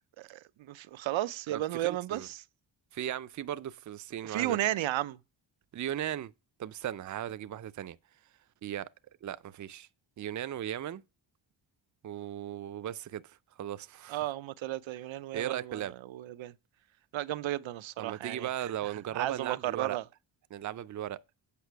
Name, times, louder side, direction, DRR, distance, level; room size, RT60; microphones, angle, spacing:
voice 1, 0.2-2.4 4.2-5.2 14.1-16.5 17.1-18.5 19.1-20.0, right 14 dB, 85° right, 0.6 m, -34 dB
voice 2, 1.5-2.3 2.9-4.6 5.7-6.3 6.6-8.0 8.6-8.9 9.2-9.9 10.2-11.0 12.0-14.3 15.3-15.9 18.0-20.0 20.5-21.2, right 11 dB, 40° right, 0.5 m, -37 dB
8.5 x 5.8 x 4.5 m
wide cardioid pair, 140°, 45 cm